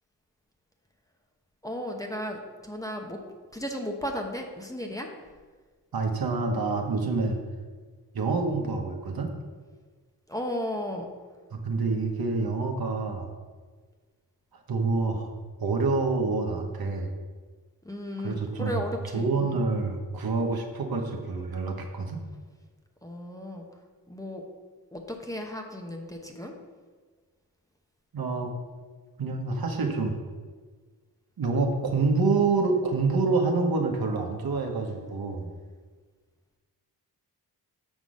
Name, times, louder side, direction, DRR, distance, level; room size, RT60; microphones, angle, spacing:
voice 1, 1.6-3.2 3.5-5.1 10.3-11.1 17.8-19.6 23.0-23.6 24.1-24.4 24.9-26.5, equal, 10° left, 1 dB, 1.0 m, -35 dB
voice 2, 5.9-7.4 8.1-9.3 11.5-13.3 14.7-15.3 15.6-17.1 18.2-18.8 19.1-22.2 28.1-28.5 29.2-30.1 31.4-35.5, right 3 dB, 60° right, 3 dB, 1.1 m, -27 dB
7.3 x 3.8 x 6.3 m, 1.5 s
cardioid pair, 65°, 40 cm